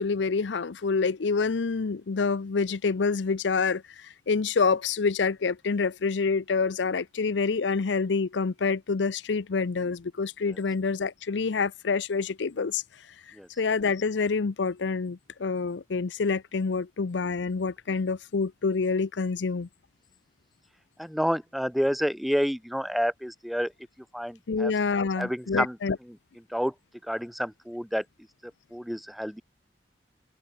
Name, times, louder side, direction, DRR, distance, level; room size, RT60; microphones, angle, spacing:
voice 1, 0.0-12.8 13.3-19.7 24.5-26.0, left 4 dB, 80° left, 0.6 m, -27 dB
voice 2, 21.0-23.7 24.1-24.7 25.2-25.8 26.5-26.7 27.1-28.0 28.7-29.4, equal, ahead, 1.3 m, -29 dB
open air
head